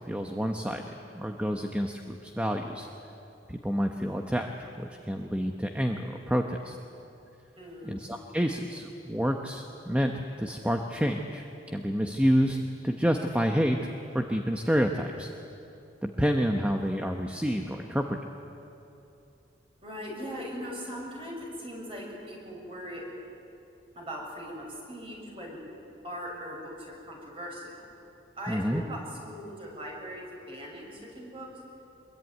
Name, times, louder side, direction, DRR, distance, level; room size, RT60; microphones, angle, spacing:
voice 1, 0.1-0.8 1.1-2.9 3.5-6.8 7.8-10.1 10.4-13.8 14.1-15.3 16.0-18.2 28.5-28.8, equal, 5° right, 3 dB, 1.0 m, -28 dB
voice 2, 7.6-7.9 19.8-23.1 23.9-25.6 26.0-27.9 28.4-31.5, equal, 30° right, -1 dB, 6.5 m, -40 dB
25.0 x 22.0 x 9.4 m, 2.8 s
head